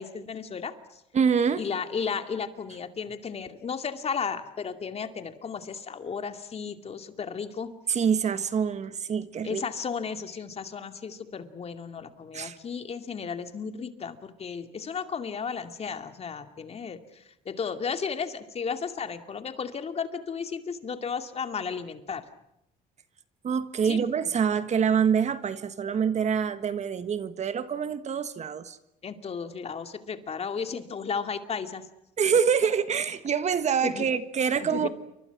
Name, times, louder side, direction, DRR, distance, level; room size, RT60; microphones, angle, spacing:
voice 1, 0.0-1.0 1.6-7.7 9.4-22.3 23.8-24.1 29.0-31.8 33.8-34.1 34.6-34.9, left 6 dB, 35° left, 2.5 m, -34 dB
voice 2, 1.1-1.6 7.9-9.6 12.3-12.6 23.4-28.8 32.2-34.9, right 7 dB, 40° right, 1.6 m, -26 dB
29.5 x 25.0 x 6.1 m
cardioid pair, 110°, 17 cm